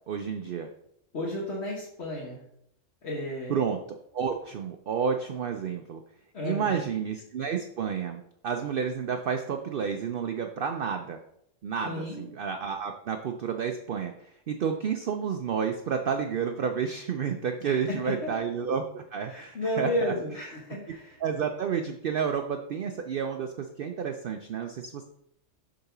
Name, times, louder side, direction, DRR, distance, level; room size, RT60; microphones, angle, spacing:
voice 1, 0.1-0.7 3.5-3.8 4.1-6.0 6.4-11.2 11.6-20.1 21.2-25.0, right 7 dB, 60° right, 5 dB, 0.6 m, -30 dB
voice 2, 1.1-2.4 3.0-3.6 6.3-6.9 11.8-12.3 17.6-18.3 19.3-21.2, left 1 dB, 55° left, -4 dB, 1.6 m, -33 dB
6.6 x 3.9 x 5.8 m, 0.75 s
omnidirectional pair, 1.3 m